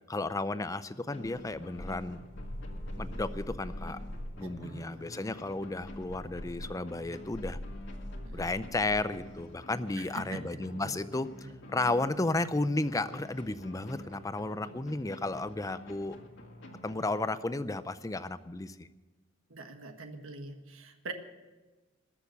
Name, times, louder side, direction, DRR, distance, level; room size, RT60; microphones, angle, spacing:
voice 1, 0.1-2.2 3.0-4.0 4.4-7.6 8.3-16.2 16.8-18.9, left 2 dB, 15° left, 14 dB, 0.5 m, -33 dB
sound 1, 1.1-17.6, left 1 dB, 55° left, 2.0 m, -49 dB
sound 2, 1.2-4.4 5.6-9.1, equal, 75° left, 1.6 m, -42 dB
voice 2, 4.4-5.0 8.2-8.4 10.0-10.4 10.7-10.9 11.4-11.5 14.0-14.1 19.5-21.1, right 3 dB, 70° right, 5 dB, 1.4 m, -44 dB
20.5 x 7.0 x 8.1 m, 1.2 s
head